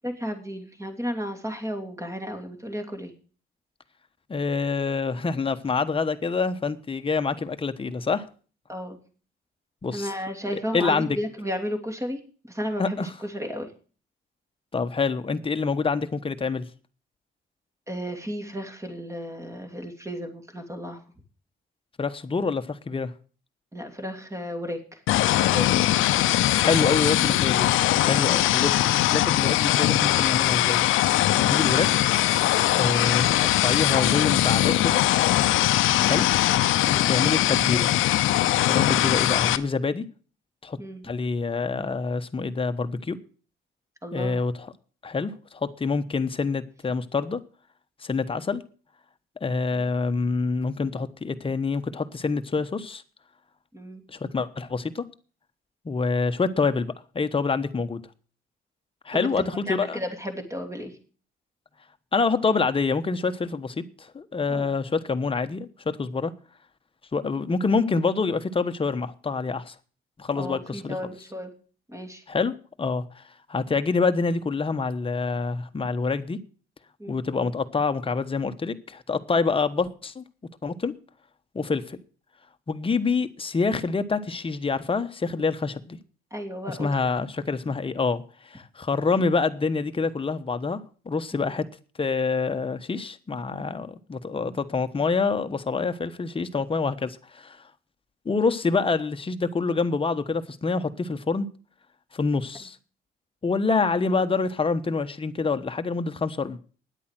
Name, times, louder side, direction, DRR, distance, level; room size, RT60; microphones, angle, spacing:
voice 1, 0.0-3.1 8.7-9.0 9.9-12.2 12.5-13.7 17.9-21.0 23.7-24.8 25.4-25.7 26.7-26.9 27.3-27.4 36.0-36.1 40.8-41.0 44.0-44.5 53.7-54.0 59.1-60.9 64.5-64.7 70.4-71.5 71.9-72.2 77.0-77.2 86.3-86.9 91.3-91.5, equal, 15° right, 5 dB, 2.9 m, -34 dB
voice 2, 4.3-8.3 9.8-10.2 10.5-11.1 12.8-13.1 14.7-16.6 22.0-23.1 26.5-27.7 28.0-32.1 32.8-35.0 36.0-36.3 36.8-38.0 38.3-40.0 40.6-40.8 41.0-43.2 44.1-44.7 45.0-47.4 48.0-48.6 49.4-53.0 54.1-55.0 55.8-58.0 59.0-60.0 62.1-66.3 67.1-69.7 70.2-71.0 72.3-73.2 73.5-76.4 77.1-80.2 80.6-80.9 81.5-82.0 82.7-86.0 86.7-88.2 88.5-90.8 91.1-91.6 92.0-97.6 98.2-101.5 102.1-102.8 103.4-106.6, left 4 dB, 25° left, 9 dB, 1.1 m, -26 dB
sound 1, 25.1-39.6, left 14 dB, 90° left, 0.7 m, -21 dB
10.0 x 8.5 x 7.6 m, 0.40 s
cardioid pair, 90°, 20 cm